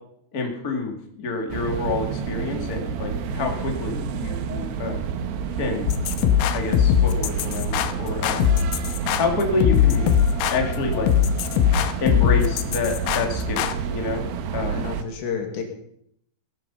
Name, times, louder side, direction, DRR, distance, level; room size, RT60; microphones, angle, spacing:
voice 1, 0.3-5.1 5.5-5.9 6.5-8.5 9.2-10.1 10.5-11.1 12.0-14.3 14.5-14.8, left 3 dB, 30° left, 1 dB, 1.7 m, -28 dB
sound 1, 1.5-15.0, right 7 dB, 75° right, 2.7 m, -29 dB
sound 2, 5.9-13.7, left 10 dB, 85° left, 3.4 m, -21 dB
voice 2, 14.7-15.6, left 6 dB, 65° left, 3 dB, 4.2 m, -30 dB
19.0 x 10.5 x 5.7 m, 0.73 s
omnidirectional pair, 5.6 m